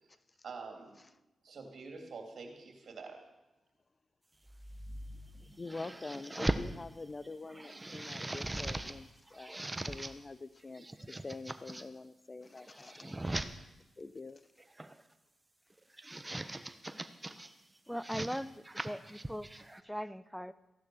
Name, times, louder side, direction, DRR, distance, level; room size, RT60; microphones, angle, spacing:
voice 1, 0.4-1.0 1.4-3.2, right 4 dB, 65° right, 3 dB, 3.2 m, -46 dB
sound 1, 4.5-6.7 7.2-9.0 9.3-10.1 10.7-11.8 12.5-13.5 14.6-15.0 15.8-17.5 17.9-19.8, right 1 dB, 25° right, 1.1 m, -40 dB
voice 2, 5.6-10.8 11.2-13.2 14.0-14.5, left 3 dB, 40° left, 16 dB, 0.9 m, -45 dB
voice 3, 17.9-19.5 19.8-20.5, equal, ahead, 17 dB, 0.7 m, -39 dB
15.5 x 11.5 x 6.4 m, 0.99 s
supercardioid pair, 40°, 0 cm